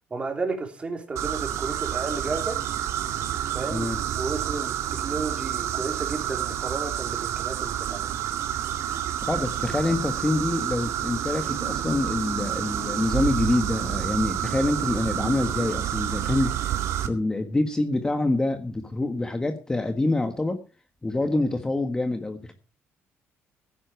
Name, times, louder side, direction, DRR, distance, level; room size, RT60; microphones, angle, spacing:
voice 1, 0.1-2.6 3.5-3.9 4.1-8.1, right 3 dB, 25° right, 4 dB, 3.5 m, -32 dB
sound 1, 1.2-17.1, right 11 dB, 75° right, 2.2 m, -29 dB
voice 2, 3.7-4.0 9.2-16.6 17.0-20.6 21.0-22.5, left 2 dB, 15° left, 7 dB, 1.5 m, -26 dB
16.5 x 10.5 x 4.5 m, 0.33 s
cardioid pair, 135°, 5 cm